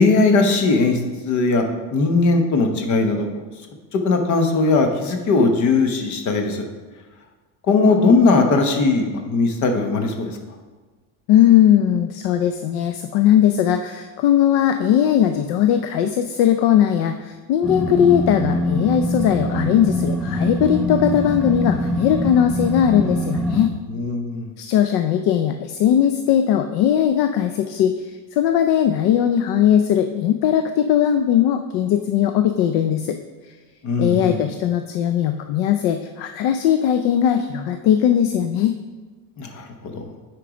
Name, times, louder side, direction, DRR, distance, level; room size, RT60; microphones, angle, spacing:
voice 1, 0.0-1.6 1.9-3.4 3.9-6.6 7.7-10.4 23.9-24.5 33.8-34.4 39.4-40.1, left 3 dB, 40° left, 5 dB, 1.0 m, -19 dB
voice 2, 11.3-23.7 24.6-33.2 34.0-38.7, left 10 dB, 60° left, 7 dB, 0.5 m, -19 dB
sound 1, 17.6-23.7, equal, ahead, 0.3 m, -24 dB
8.5 x 4.6 x 5.0 m, 1.3 s
cardioid pair, 155°, 44 cm